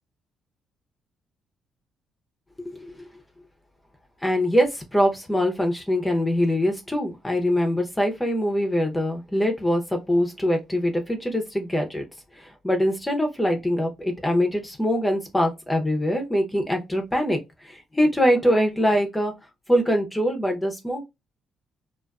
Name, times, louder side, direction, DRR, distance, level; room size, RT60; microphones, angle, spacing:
voice 1, 4.2-12.0 12.4-19.3 19.7-21.1, equal, 10° left, 0.6 m, -23 dB
2.4 x 2.3 x 2.3 m
cardioid pair, 90°, 0 cm